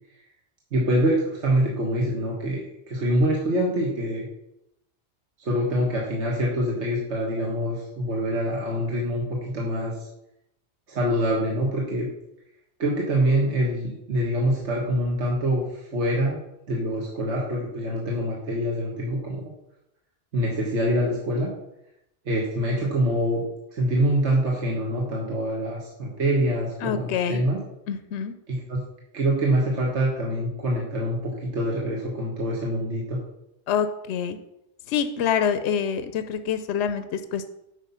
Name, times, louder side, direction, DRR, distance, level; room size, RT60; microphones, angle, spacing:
voice 1, 0.7-2.6 2.9-4.3 5.4-10.0 10.9-12.1 12.8-16.4 16.7-19.4 20.3-21.5 22.2-23.4 23.7-27.6 28.5-28.8 29.1-33.2, right 1 dB, 70° right, -3 dB, 1.7 m, -25 dB
voice 2, 26.8-27.4 27.9-28.3 33.7-34.4 34.9-37.5, left 7 dB, 75° left, 10 dB, 0.9 m, -26 dB
8.3 x 5.4 x 5.6 m, 0.84 s
omnidirectional pair, 1.2 m